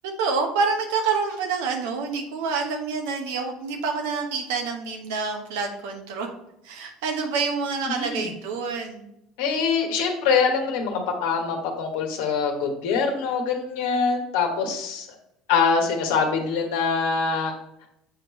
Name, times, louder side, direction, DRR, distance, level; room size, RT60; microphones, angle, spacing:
voice 1, 0.2-6.3 6.6-9.1, right 5 dB, 75° right, 3 dB, 1.1 m, -27 dB
voice 2, 7.9-8.3 9.4-15.1 15.5-17.5, left 5 dB, 70° left, 3 dB, 1.2 m, -24 dB
7.3 x 4.6 x 3.1 m, 0.81 s
hypercardioid pair, 70°, 0 cm